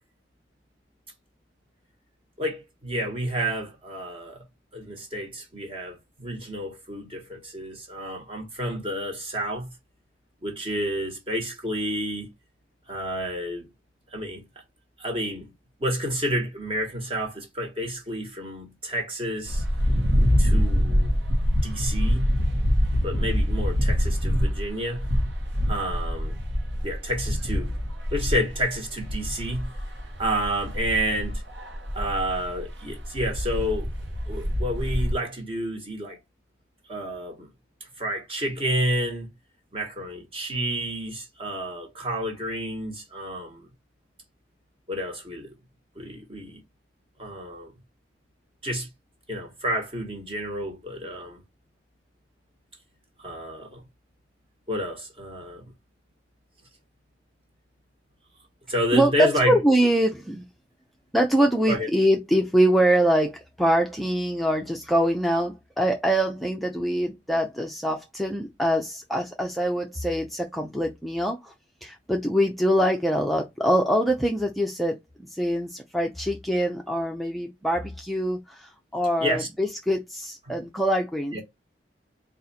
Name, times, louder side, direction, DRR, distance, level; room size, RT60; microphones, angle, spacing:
voice 1, 2.4-4.4 4.7-9.7 10.4-12.3 12.9-13.7 14.1-14.4 15.0-15.5 15.8-19.6 20.4-21.1 21.6-22.3 23.0-25.1 25.7-26.3 26.8-27.7 28.1-29.7 30.2-31.4 31.9-33.9 34.3-36.2 36.9-37.5 37.8-39.3 39.7-43.7 44.9-45.5 46.0-46.6 47.2-47.7 48.6-48.9 49.3-51.4 53.2-53.8 54.7-55.7 58.7-59.6 61.7-61.9 79.2-79.5 80.5-80.6 81.3-81.4, equal, 30° right, 1.2 m, -30 dB
sound 1, 19.4-35.1, equal, 85° right, 1.0 m, -25 dB
voice 2, 58.9-60.4 61.1-71.5 71.8-81.4, equal, ahead, 0.4 m, -24 dB
4.0 x 2.4 x 4.0 m
head